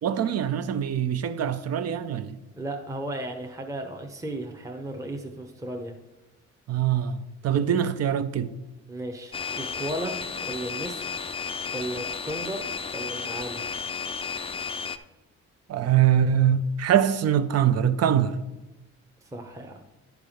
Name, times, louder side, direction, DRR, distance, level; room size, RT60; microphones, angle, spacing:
voice 1, 0.0-2.4 6.7-8.6 15.7-18.4, right 9 dB, 55° right, 0.6 m, -23 dB
voice 2, 2.6-5.9 8.9-11.2 11.7-13.6 19.2-19.8, right 1 dB, 10° right, 0.9 m, -35 dB
sound 1, 9.3-15.0, left 6 dB, 20° left, 0.5 m, -33 dB
10.5 x 4.7 x 5.0 m
cardioid pair, 90°, 30 cm